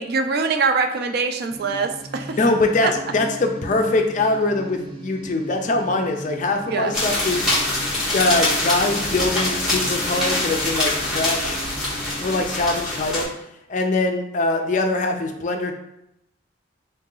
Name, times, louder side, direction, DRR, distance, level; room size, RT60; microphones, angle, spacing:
voice 1, 0.0-2.4 2.8-2.9 6.7-7.0, right 4 dB, 50° right, 7 dB, 0.3 m, -23 dB
sound 1, 1.5-12.5, right 1 dB, 30° right, 0.7 m, -38 dB
voice 2, 2.4-7.5 8.1-11.6 12.2-13.3 13.7-15.7, left 2 dB, 40° left, 4 dB, 0.4 m, -22 dB
sound 2, 6.9-13.2, left 2 dB, 5° right, 1.1 m, -24 dB
3.9 x 2.8 x 3.7 m, 0.83 s
head